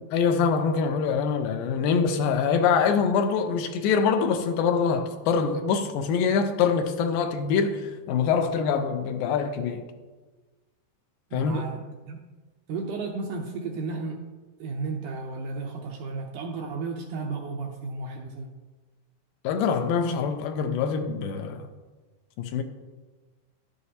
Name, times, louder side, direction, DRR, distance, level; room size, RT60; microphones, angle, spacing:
voice 1, 0.1-9.9 11.3-11.5 19.4-21.7 22.4-22.6, left 6 dB, 85° left, 2.3 m, -24 dB
voice 2, 11.3-12.2 12.7-14.3 14.6-18.6, right 4 dB, 80° right, 1.9 m, -33 dB
11.5 x 7.6 x 2.8 m
omnidirectional pair, 4.1 m